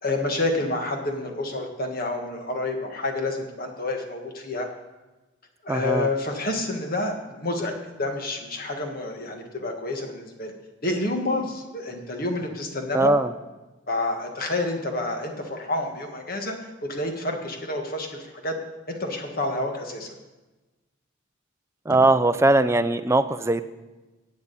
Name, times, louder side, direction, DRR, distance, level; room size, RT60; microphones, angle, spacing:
voice 1, 0.0-4.7 5.6-10.5 10.8-13.1 13.9-18.6 18.9-20.1, left 2 dB, 45° left, 3 dB, 1.6 m, -29 dB
voice 2, 5.7-6.1 12.9-13.3 21.9-23.6, right 2 dB, 15° right, 11 dB, 0.4 m, -20 dB
15.5 x 8.8 x 4.1 m, 1.1 s
head